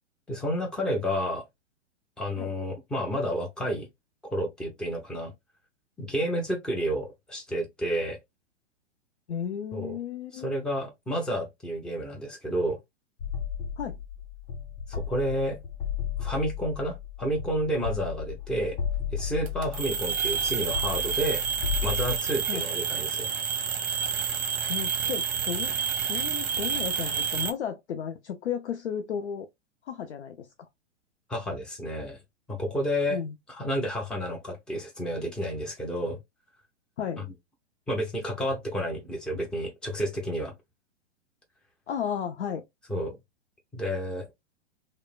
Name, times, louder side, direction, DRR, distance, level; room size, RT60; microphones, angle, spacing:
voice 1, 0.3-1.4 2.2-3.9 4.2-5.3 6.0-8.2 9.7-10.0 10.3-12.8 14.9-15.6 16.2-18.8 19.1-21.4 21.8-23.3 31.3-32.2 32.5-33.2 33.5-36.2 37.2-37.3 37.9-40.5 42.9-43.2 43.7-44.3, equal, ahead, 0.5 m, -30 dB
voice 2, 9.3-10.6 13.8-14.0 22.5-22.6 24.7-29.5 29.9-30.7 33.1-33.3 37.0-37.2 41.9-42.6, left 8 dB, 70° left, 0.5 m, -34 dB
sound 1, 13.2-22.2, left 7 dB, 55° left, 1.1 m, -34 dB
sound 2, 19.5-27.5, right 7 dB, 30° right, 0.7 m, -29 dB
2.9 x 2.0 x 2.3 m
figure-of-eight pair, 110°, 35 cm